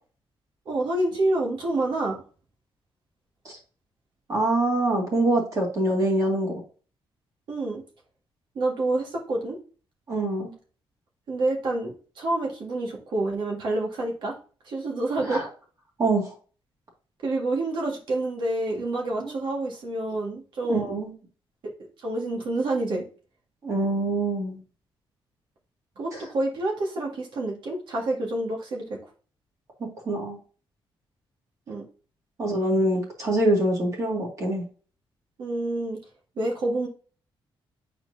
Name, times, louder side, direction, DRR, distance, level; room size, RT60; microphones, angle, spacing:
voice 1, 0.6-2.2 7.5-7.8 8.5-9.6 11.3-14.4 14.6-15.4 17.2-20.9 21.8-23.0 26.0-29.0 31.7-31.8 35.4-36.0 36.3-36.9, right 2 dB, 60° right, -1 dB, 1.8 m, -28 dB
voice 2, 4.3-6.6 10.1-10.5 15.2-15.5 16.0-16.3 19.2-19.4 20.7-21.1 23.6-24.6 29.8-30.4 32.4-34.7, right 1 dB, 35° right, -1 dB, 2.1 m, -25 dB
8.9 x 4.4 x 2.7 m, 0.39 s
wide cardioid pair, 180°, 9 cm